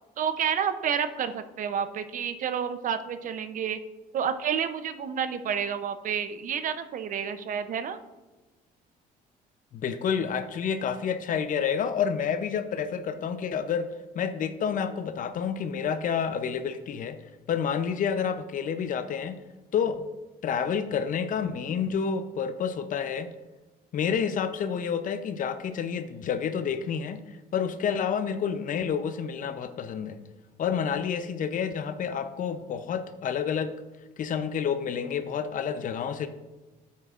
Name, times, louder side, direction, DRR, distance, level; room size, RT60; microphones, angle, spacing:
voice 1, 0.2-3.8 4.1-8.0, right 8 dB, 50° right, 11 dB, 0.7 m, -29 dB
voice 2, 9.7-13.9 14.1-17.2 17.5-19.4 19.7-20.1 20.4-23.3 23.9-27.2 27.5-30.2 30.6-33.7 34.2-36.3, left 7 dB, 50° left, 11 dB, 0.7 m, -29 dB
9.1 x 8.3 x 2.5 m, 1.2 s
cardioid pair, 110°, 17 cm